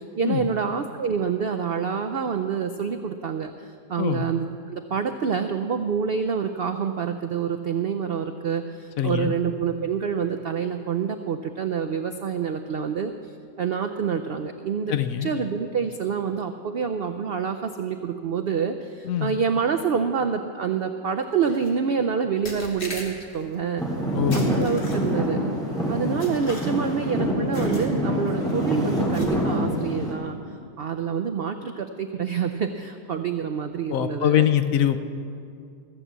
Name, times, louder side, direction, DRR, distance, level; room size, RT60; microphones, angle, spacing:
voice 1, 0.0-14.9 15.2-23.8 24.3-25.4 25.9-30.4 30.8-34.4, right 6 dB, 75° right, 7 dB, 0.5 m, -27 dB
voice 2, 9.0-9.3 14.9-15.3 19.0-19.3 24.1-24.6 33.9-35.0, left 10 dB, 70° left, 10 dB, 1.0 m, -23 dB
sound 1, 21.4-21.7 22.4-23.4 24.3-25.3 26.2-27.0 27.5-27.9 28.3-28.5 29.1-29.6, left 2 dB, 45° left, 2.0 m, -39 dB
Traffic noise roadway noise / Engine, 23.8-30.1, equal, ahead, 2.6 m, -26 dB
15.0 x 7.3 x 8.0 m, 2.4 s
omnidirectional pair, 1.6 m